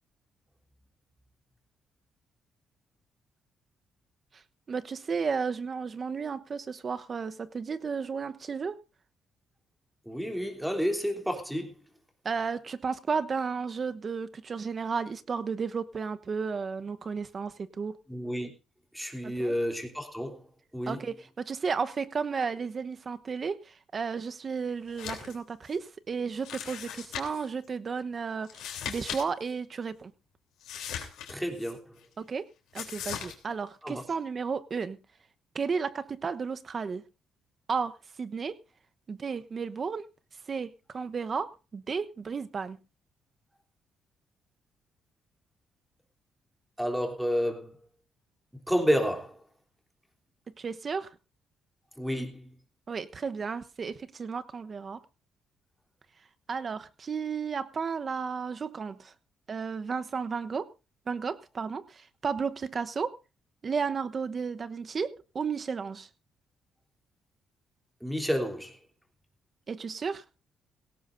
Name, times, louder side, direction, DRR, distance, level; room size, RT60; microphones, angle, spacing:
voice 1, 4.7-8.8 12.2-18.0 19.2-19.6 20.9-30.1 32.2-32.4 32.7-35.0 35.5-37.0 37.7-38.6 39.1-40.0 40.5-42.8 50.6-51.1 52.9-55.0 56.5-59.1 59.5-60.7 61.1-63.2 63.6-66.1 69.7-70.2, right 5 dB, 40° right, 1.0 m, -33 dB
voice 2, 10.0-11.7 18.1-18.5 18.9-20.4 20.7-21.0 31.3-31.8 33.8-34.0 46.8-47.7 48.7-49.3 52.0-52.4 68.0-68.7, equal, ahead, 3.3 m, -30 dB
sound 1, 24.9-25.4 25.7-25.8 26.4-27.5 28.4-29.2 29.5-29.6 30.6-31.7 32.7-33.3, left 9 dB, 90° left, 3.3 m, -38 dB
17.5 x 17.0 x 2.6 m
cardioid pair, 90°, 0 cm